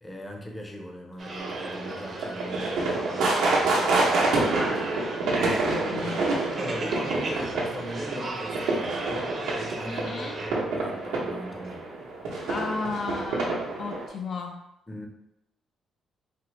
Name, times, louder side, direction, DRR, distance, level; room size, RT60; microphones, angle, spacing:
voice 1, 0.0-4.4 4.7-5.0 5.3-11.9 14.9-15.1, equal, 15° left, 1 dB, 0.6 m, -39 dB
sound 1, 1.2-10.5, right 2 dB, 45° right, 0.7 m, -36 dB
sound 2, 1.4-14.1, right 2 dB, 85° right, 0.8 m, -28 dB
voice 2, 5.2-6.2 9.9-10.4 12.5-14.6, left 4 dB, 55° left, 2 dB, 0.4 m, -34 dB
4.1 x 2.0 x 3.1 m, 0.86 s
cardioid pair, 90°, 0 cm